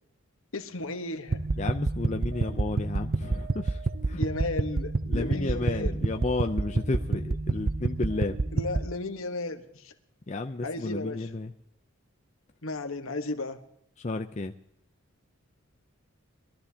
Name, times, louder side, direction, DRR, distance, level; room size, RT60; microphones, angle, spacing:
voice 1, 0.5-1.4 4.2-6.0 8.5-9.9 10.6-11.3 12.6-13.6, left 2 dB, 70° left, 7 dB, 1.3 m, -34 dB
sound 1, 1.3-8.8, right 3 dB, 45° right, 0.6 m, -29 dB
voice 2, 1.6-4.2 5.1-8.4 10.3-11.5 14.0-14.5, left 2 dB, 30° left, 5 dB, 0.5 m, -32 dB
22.5 x 13.5 x 2.8 m, 0.77 s
head